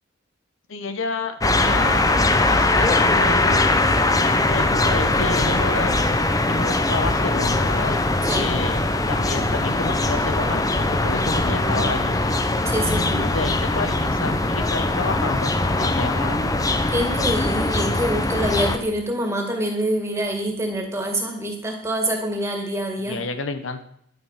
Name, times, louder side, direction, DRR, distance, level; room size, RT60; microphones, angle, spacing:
voice 1, 0.7-2.0 2.5-3.7 4.1-5.9 6.5-8.0 8.4-8.8 9.1-12.2 12.8-16.7 23.0-23.8, left 3 dB, 80° left, 9 dB, 1.0 m, -29 dB
sound 1, 1.4-18.8, left 2 dB, 15° left, 0.7 m, -21 dB
voice 2, 12.7-13.2 16.9-23.2, right 1 dB, 15° right, 2 dB, 2.2 m, -25 dB
11.0 x 9.4 x 5.8 m, 0.70 s
head